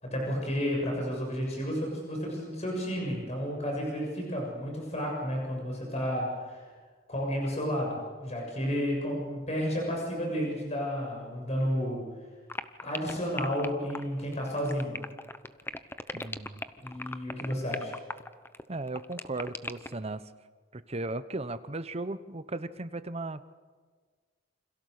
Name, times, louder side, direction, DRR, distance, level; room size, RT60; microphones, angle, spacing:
voice 1, 0.0-6.6 7.1-12.1 12.8-15.0 16.8-18.0, equal, 35° left, 0 dB, 7.0 m, -32 dB
sound 1, 12.5-20.0, left 2 dB, 10° left, 0.8 m, -38 dB
voice 2, 16.1-16.6 18.7-20.2 20.7-23.4, right 2 dB, 30° right, 12 dB, 1.0 m, -36 dB
28.5 x 26.5 x 6.7 m, 1.5 s
head